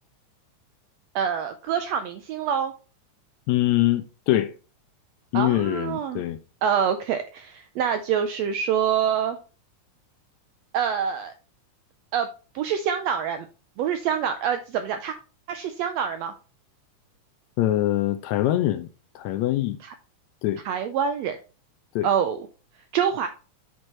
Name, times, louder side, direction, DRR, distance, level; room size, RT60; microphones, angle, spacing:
voice 1, 1.1-2.7 5.3-6.2 6.6-9.4 10.7-11.3 12.1-12.3 12.5-13.5 13.8-15.2 15.5-16.3 19.8-19.9 20.6-21.4 22.0-22.4 22.9-23.3, right 8 dB, 85° right, 1.5 m, -26 dB
voice 2, 3.5-4.5 5.3-6.4 17.6-18.9 19.1-19.8 20.4-20.6 21.9-22.1, left 14 dB, 80° left, 1.7 m, -23 dB
8.3 x 4.5 x 4.2 m
omnidirectional pair, 3.6 m